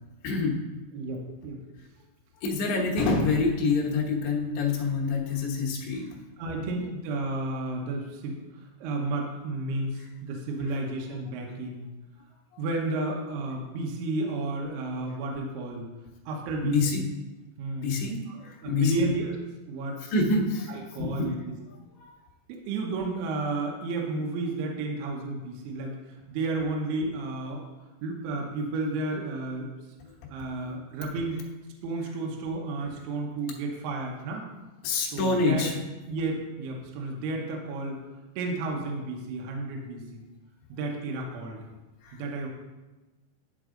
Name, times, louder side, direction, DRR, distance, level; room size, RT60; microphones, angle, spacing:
voice 1, 0.2-0.6 2.4-6.1 16.6-17.1 17.8-19.0 20.1-21.3 21.9-22.1 34.8-35.8 42.0-42.2, left 3 dB, 75° left, -3 dB, 1.8 m, -26 dB
voice 2, 0.9-1.6 6.4-8.4 8.8-11.9 12.6-15.9 16.3-17.0 17.6-17.9 18.3-19.3 19.7-20.0 20.7-21.4 22.5-26.0 26.3-27.6 28.0-29.7 30.3-31.4 31.8-34.5 35.1-35.7 36.1-38.0 38.4-40.2 40.7-41.6 42.1-42.5, right 2 dB, 75° right, 0 dB, 2.6 m, -32 dB
11.5 x 4.0 x 3.7 m, 1.1 s
omnidirectional pair, 5.2 m